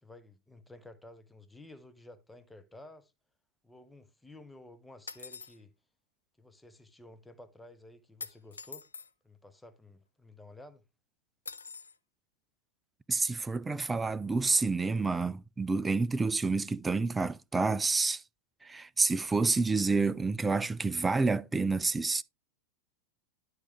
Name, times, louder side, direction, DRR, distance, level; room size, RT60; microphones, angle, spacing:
voice 1, 0.0-3.1 3.6-5.7 6.4-8.9 9.2-10.8, left 1 dB, 5° left, 0.8 m, -53 dB
sound 1, 5.1-5.6 8.2-9.1 11.5-12.0, left 5 dB, 75° left, 0.4 m, -44 dB
voice 2, 13.1-18.2 18.6-22.2, right 3 dB, 10° right, 0.3 m, -29 dB
12.0 x 4.7 x 3.2 m
figure-of-eight pair, 90°, 0 cm